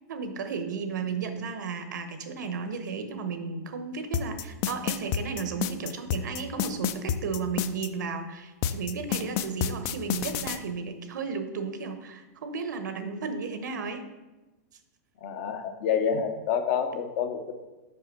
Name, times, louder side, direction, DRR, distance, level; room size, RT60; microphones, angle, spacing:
voice 1, 0.1-14.0, right 5 dB, 85° right, 8 dB, 0.9 m, -34 dB
sound 1, 4.1-7.9 8.6-10.6, left 10 dB, 35° left, 0.4 m, -29 dB
voice 2, 15.2-17.5, left 7 dB, 50° left, 8 dB, 0.8 m, -28 dB
5.5 x 5.1 x 5.3 m, 1.1 s
supercardioid pair, 150°, 10 cm